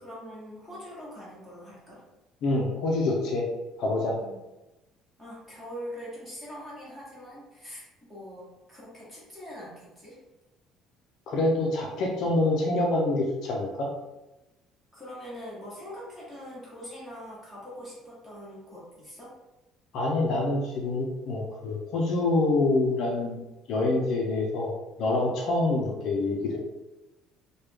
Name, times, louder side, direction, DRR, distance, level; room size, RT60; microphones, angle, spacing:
voice 1, 0.0-2.0 4.2-4.4 5.2-10.2 14.9-19.3, equal, ahead, -8 dB, 1.1 m, -43 dB
voice 2, 2.4-3.5 3.8-4.2 11.3-13.9 19.9-23.4 23.7-24.7 25.0-26.6, left 2 dB, 50° left, -1 dB, 0.4 m, -26 dB
3.2 x 2.2 x 3.3 m, 1.0 s
cardioid pair, 175°, 0 cm